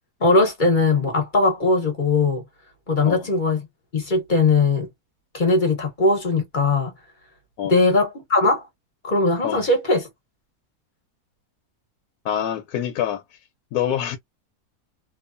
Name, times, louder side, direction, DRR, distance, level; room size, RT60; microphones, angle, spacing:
voice 1, 0.2-2.4 2.9-3.6 3.9-4.9 5.3-6.9 7.6-8.7 9.0-10.1, left 3 dB, 35° left, 1.1 m, -20 dB
voice 2, 12.2-13.2 13.7-14.2, left 10 dB, 85° left, 1.1 m, -25 dB
3.0 x 2.3 x 2.5 m
omnidirectional pair, 1.6 m